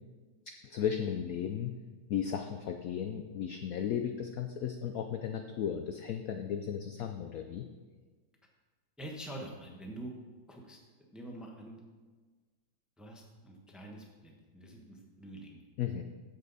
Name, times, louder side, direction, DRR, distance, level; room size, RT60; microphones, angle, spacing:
voice 1, 0.6-1.7 2.1-7.7 15.8-16.0, left 8 dB, 70° left, 6 dB, 0.8 m, -35 dB
voice 2, 9.0-10.1 10.5-10.8 11.1-11.8 13.0-15.6, right 1 dB, ahead, 0 dB, 0.9 m, -46 dB
15.0 x 5.5 x 4.1 m, 1.4 s
omnidirectional pair, 2.0 m